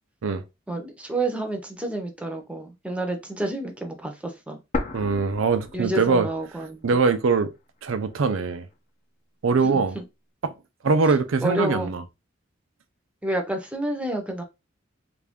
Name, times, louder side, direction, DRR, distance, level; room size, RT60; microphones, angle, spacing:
voice 1, 0.7-4.6 5.7-6.9 9.6-10.0 11.4-11.9 13.2-14.4, right 1 dB, 5° right, 0.7 m, -29 dB
sound 1, 4.7-6.7 7.0-7.1 7.8-8.7, left 2 dB, 40° left, 0.6 m, -33 dB
voice 2, 4.9-6.3 6.8-7.5 7.8-8.7 9.4-10.0 10.4-10.5 10.8-12.0, right 4 dB, 80° right, 0.5 m, -22 dB
3.3 x 2.6 x 3.5 m
head